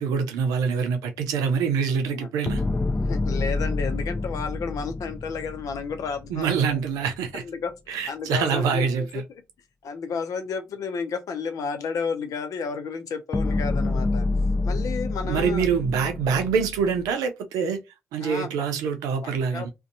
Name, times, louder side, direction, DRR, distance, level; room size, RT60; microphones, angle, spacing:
voice 1, 0.0-2.6 6.3-7.4 7.9-9.2 15.2-17.8 18.1-19.7, right 6 dB, 90° right, 0.5 m, -25 dB
sound 1, 2.5-6.7 13.3-17.1, left 2 dB, 25° left, 0.5 m, -27 dB
voice 2, 3.0-6.8 7.3-7.7 8.1-9.2 9.8-14.2 14.6-15.6 18.2-18.7 19.2-19.7, left 5 dB, 70° left, 0.6 m, -32 dB
2.6 x 2.2 x 2.5 m
supercardioid pair, 50°, 6 cm